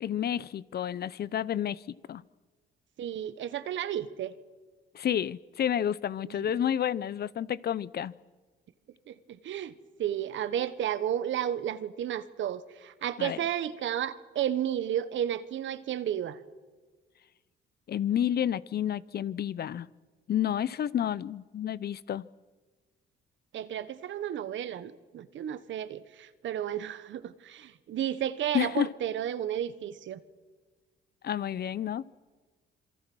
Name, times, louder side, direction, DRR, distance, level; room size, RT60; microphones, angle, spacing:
voice 1, 0.0-1.8 2.1-2.2 4.9-8.1 13.2-13.4 17.9-19.9 20.3-22.3 28.5-28.9 31.2-32.3, left 10 dB, 55° left, 0.7 m, -30 dB
voice 2, 3.0-4.3 6.2-6.4 9.1-16.4 23.5-30.2, right 10 dB, 70° right, 1.3 m, -33 dB
27.0 x 23.0 x 6.3 m
cardioid pair, 90°, 20 cm